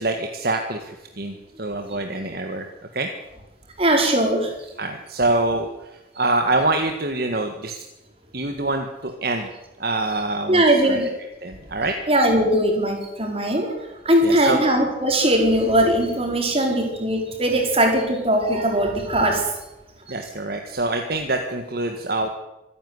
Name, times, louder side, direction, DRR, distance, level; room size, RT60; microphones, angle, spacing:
voice 1, 0.0-2.7 2.9-3.1 4.8-7.8 8.3-9.5 9.8-11.0 11.4-12.0 14.2-14.6 20.1-22.3, right 2 dB, 55° right, 4 dB, 1.7 m, -25 dB
voice 2, 3.8-4.5 10.5-11.1 12.1-13.7 14.0-19.5 20.1-20.2, right 1 dB, 30° right, 2 dB, 4.8 m, -20 dB
25.5 x 11.0 x 9.7 m, 0.99 s
head